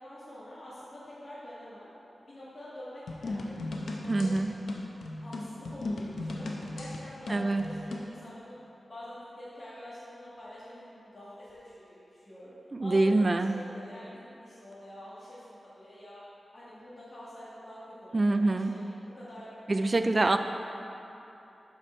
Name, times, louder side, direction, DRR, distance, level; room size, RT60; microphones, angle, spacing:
voice 1, 0.0-1.9 2.3-4.3 5.2-8.6 8.9-12.5 12.8-16.2 16.5-18.8 19.2-20.4, equal, 35° left, -10 dB, 1.8 m, -46 dB
sound 1, 3.1-8.1, left 2 dB, 80° left, 0.8 m, -37 dB
voice 2, 4.1-4.5 7.3-7.7 12.7-13.6 18.1-18.8 19.7-20.4, right 2 dB, 30° right, 8 dB, 0.3 m, -25 dB
12.0 x 5.0 x 4.4 m, 2.9 s
wide cardioid pair, 150°, 0 cm